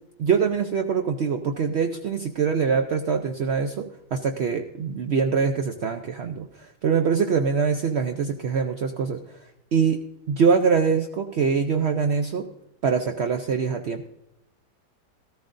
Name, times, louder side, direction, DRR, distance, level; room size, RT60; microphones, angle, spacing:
voice 1, 0.2-6.5 6.8-9.2 9.7-10.0 10.3-12.5 12.8-14.1, right 6 dB, 75° right, 6 dB, 0.6 m, -23 dB
14.0 x 14.0 x 2.6 m, 0.86 s
omnidirectional pair, 1.9 m